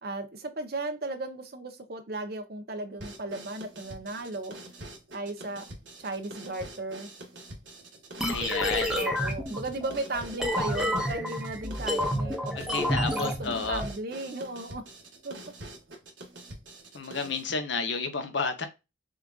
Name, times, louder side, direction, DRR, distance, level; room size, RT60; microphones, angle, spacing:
voice 1, 0.0-4.6 5.1-5.7 6.0-7.1 8.7-14.8 15.2-15.3, right 2 dB, 55° right, 0.8 m, -36 dB
sound 1, 3.0-17.5, right 1 dB, 75° right, 1.4 m, -46 dB
sound 2, 8.2-13.9, equal, 5° right, 0.6 m, -30 dB
voice 2, 8.3-9.0 12.6-13.8 16.9-18.7, left 4 dB, 70° left, 0.9 m, -31 dB
6.2 x 2.5 x 2.4 m
head